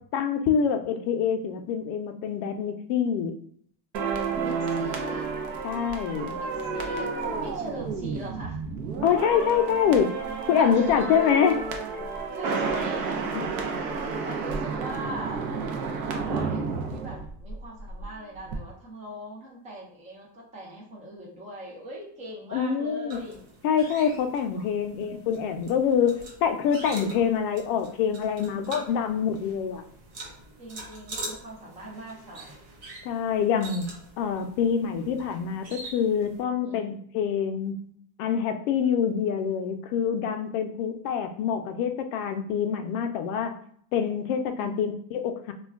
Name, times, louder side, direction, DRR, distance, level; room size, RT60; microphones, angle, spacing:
voice 1, 0.1-3.3 5.6-6.3 9.0-10.2 10.5-11.6 13.3-13.5 22.5-23.2 23.6-26.1 26.4-29.8 33.0-33.9 34.2-37.9 38.2-43.6 43.9-45.5, left 7 dB, 65° left, 7 dB, 0.5 m, -25 dB
sound 1, 3.9-18.1 18.3-18.6, right 4 dB, 60° right, 0.6 m, -31 dB
voice 2, 4.4-5.3 6.3-8.6 10.5-11.7 12.3-13.4 14.2-15.5 16.0-23.4 24.7-24.9 30.6-32.5 36.6-37.0 44.6-44.8, equal, 15° right, -4 dB, 0.5 m, -40 dB
sound 2, 23.1-36.4, right 2 dB, 75° right, 0.9 m, -44 dB
2.3 x 2.2 x 3.5 m, 0.62 s
cardioid pair, 170°, 47 cm